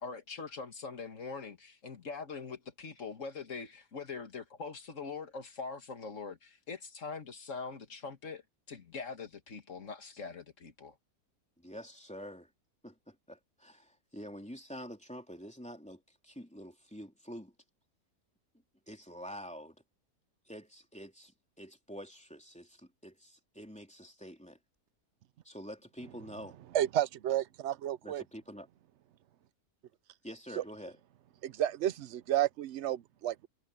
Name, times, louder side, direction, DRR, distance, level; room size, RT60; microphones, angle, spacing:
voice 1, 0.0-8.4 8.7-10.9, left 4 dB, 60° left, 2.1 m, -43 dB
voice 2, 11.6-12.5 12.8-17.5 18.9-19.8 20.5-21.3 21.6-24.6 25.4-26.6 28.0-28.7 30.2-31.0, equal, 5° left, 3.2 m, -47 dB
voice 3, 26.7-28.2 30.6-30.7 31.4-33.5, right 11 dB, 65° right, 0.8 m, -31 dB
omnidirectional pair, 1.5 m